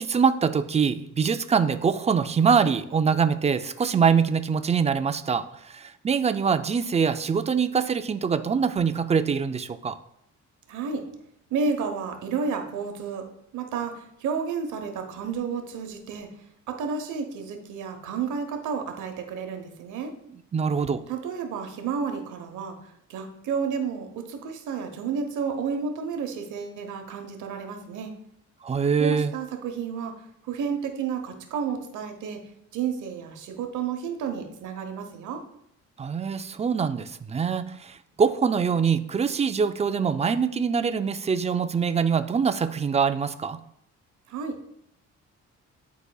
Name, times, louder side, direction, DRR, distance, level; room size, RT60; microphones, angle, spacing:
voice 1, 0.0-10.0 20.5-21.0 28.6-29.3 36.0-43.6, right 6 dB, 20° right, 10 dB, 0.4 m, -24 dB
voice 2, 10.7-11.0 11.5-13.2 13.5-16.3 16.7-20.1 21.1-22.8 23.1-28.1 29.0-30.1 30.5-32.4 32.7-35.4 44.3-44.6, right 6 dB, 80° right, 5 dB, 1.0 m, -31 dB
11.0 x 4.0 x 2.3 m, 0.76 s
cardioid pair, 90°, 30 cm